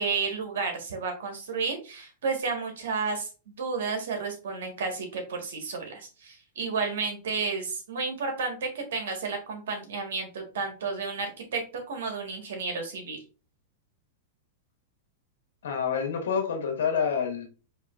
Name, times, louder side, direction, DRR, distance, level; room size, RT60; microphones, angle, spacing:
voice 1, 0.0-13.2, right 4 dB, 80° right, 4 dB, 1.4 m, -32 dB
voice 2, 15.6-17.5, left 6 dB, 80° left, 3 dB, 1.3 m, -27 dB
4.8 x 2.9 x 2.4 m, 0.34 s
hypercardioid pair, 135°, 0 cm